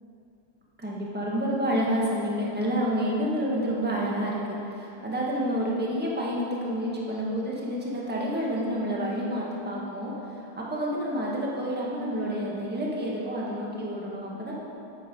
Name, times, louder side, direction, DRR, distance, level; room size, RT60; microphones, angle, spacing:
voice 1, 0.8-14.6, equal, 5° right, -4 dB, 1.0 m, -29 dB
8.9 x 8.1 x 5.3 m, 2.8 s
omnidirectional pair, 2.4 m